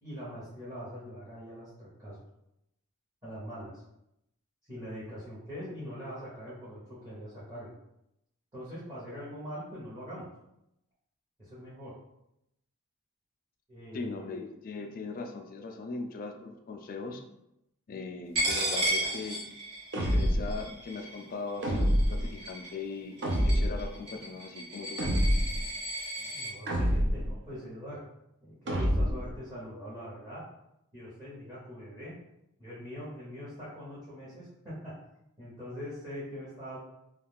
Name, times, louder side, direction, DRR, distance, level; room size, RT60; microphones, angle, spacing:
voice 1, 0.0-2.2 3.2-3.8 4.7-7.7 8.5-10.3 11.4-11.9 13.7-14.3 26.1-28.0 28.4-30.4 30.9-32.2 32.6-34.9 35.4-36.8, equal, 15° right, -10 dB, 0.9 m, -43 dB
voice 2, 13.9-17.2 17.9-19.4 20.0-23.2 23.4-25.3, left 4 dB, 40° left, 4 dB, 0.3 m, -39 dB
Coin (dropping), 18.4-26.5, right 1 dB, 85° right, 1.0 m, -34 dB
sound 1, 19.9-20.6 21.6-22.3 23.2-23.9 25.0-25.6 26.7-27.3 28.7-29.3, equal, 50° right, 0.5 m, -26 dB
2.4 x 2.3 x 3.4 m, 0.84 s
head